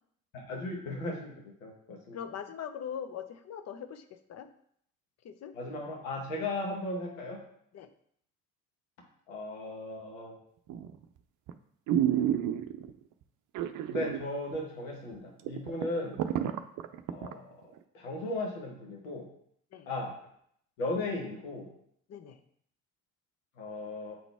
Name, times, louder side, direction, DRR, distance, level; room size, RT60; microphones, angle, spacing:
voice 1, 0.3-2.2 5.5-7.4 9.3-10.4 13.9-16.2 17.1-17.6 17.9-19.2 19.9-20.1 20.8-21.7 23.6-24.2, left 2 dB, 80° left, 0 dB, 1.5 m, -36 dB
voice 2, 2.1-4.5 5.2-5.6 7.7-7.9 19.7-19.9 22.1-22.4, left 8 dB, 40° left, 9 dB, 0.8 m, -41 dB
sound 1, 10.7-11.0 11.5-11.6 11.9-12.9 13.5-14.2 14.5-14.6 15.1-15.2 15.5-17.3 17.8-17.9, right 11 dB, 50° right, 0.6 m, -30 dB
7.5 x 3.9 x 3.5 m, 0.67 s
hypercardioid pair, 50°, 40 cm